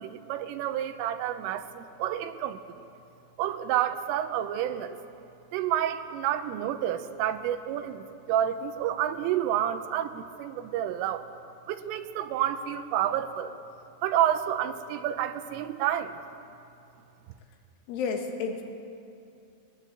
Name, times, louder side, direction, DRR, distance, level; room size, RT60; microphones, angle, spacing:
voice 1, 0.0-2.6 3.4-5.0 5.5-11.2 11.7-13.5 14.0-16.1, right 11 dB, 85° right, 9 dB, 3.5 m, -29 dB
voice 2, 17.9-18.6, left 5 dB, 75° left, 2 dB, 4.3 m, -31 dB
20.5 x 19.5 x 8.0 m, 2.5 s
omnidirectional pair, 5.7 m